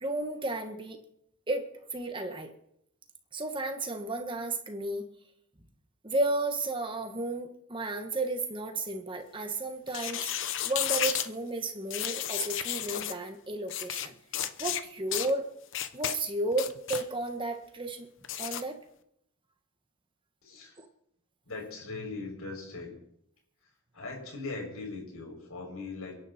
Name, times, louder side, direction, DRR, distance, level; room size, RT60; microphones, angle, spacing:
voice 1, 0.0-1.0 1.5-2.5 3.3-5.0 6.0-10.3 10.6-14.1 14.6-15.5 15.9-18.1 18.4-18.8 20.8-20.9, right 2 dB, 25° right, 5 dB, 1.6 m, -33 dB
sound 1, 9.9-11.3 11.9-13.2 13.7-14.1 14.3-14.8 15.1-15.3 15.7-16.2 16.5-17.0 18.2-18.6, left 11 dB, 60° left, 1.0 m, -32 dB
voice 2, 20.4-20.8 21.5-23.0 23.6-26.2, left 3 dB, 75° left, 0 dB, 7.1 m, -40 dB
29.0 x 11.0 x 4.5 m, 0.74 s
head